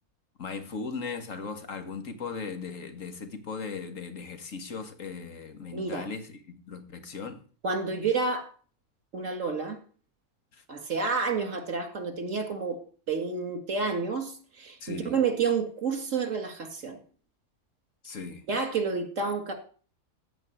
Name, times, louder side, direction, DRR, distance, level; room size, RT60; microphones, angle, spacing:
voice 1, 0.4-7.4 14.8-15.2 18.0-18.4, left 5 dB, 60° left, 1.9 m, -38 dB
voice 2, 5.7-6.1 7.6-8.5 9.1-9.8 10.7-12.8 13.1-17.0 18.5-19.5, right 5 dB, 60° right, 2.4 m, -29 dB
14.5 x 5.3 x 9.2 m
omnidirectional pair, 1.5 m